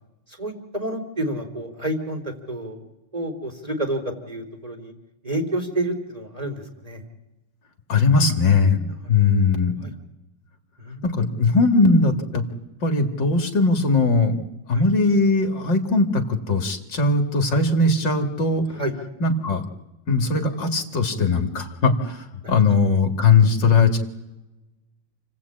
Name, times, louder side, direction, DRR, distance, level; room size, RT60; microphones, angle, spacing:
voice 1, 0.4-2.8 3.1-4.9 5.2-7.0 8.9-9.1 9.8-9.9 10.8-11.3 14.7-14.8 18.8-18.9 22.4-22.6, right 1 dB, 10° right, 4 dB, 3.0 m, -29 dB
voice 2, 7.9-9.7 11.0-12.4 12.8-14.4 14.7-18.7 19.2-19.6 20.1-24.0, left 3 dB, 40° left, 6 dB, 2.4 m, -19 dB
29.0 x 19.0 x 8.7 m, 0.99 s
omnidirectional pair, 3.6 m